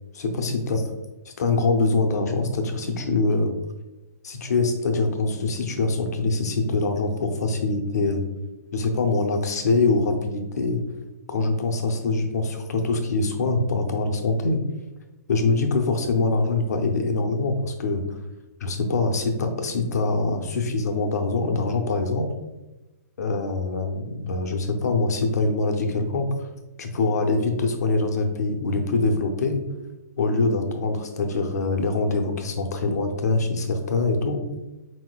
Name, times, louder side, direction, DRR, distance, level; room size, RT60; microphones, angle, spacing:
voice 1, 0.1-0.8 1.4-3.5 4.2-8.2 8.7-10.8 11.3-14.6 15.3-18.0 18.6-22.3 23.2-26.5 26.8-29.6 30.2-34.4, left 3 dB, 70° left, 4 dB, 0.7 m, -24 dB
4.2 x 4.2 x 2.3 m, 1.1 s
hypercardioid pair, 150°, 9 cm